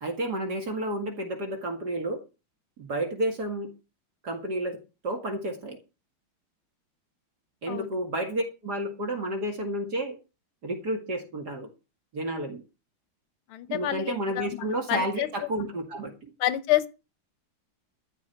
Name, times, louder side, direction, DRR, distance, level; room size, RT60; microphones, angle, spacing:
voice 1, 0.0-2.2 2.8-3.7 4.2-4.8 5.0-5.8 7.6-10.2 10.6-11.7 12.1-12.6 13.7-16.3, right 1 dB, 50° right, 2.6 m, -31 dB
voice 2, 13.5-15.3 16.4-16.9, left 14 dB, 90° left, 1.8 m, -28 dB
14.0 x 5.1 x 9.2 m
omnidirectional pair, 2.3 m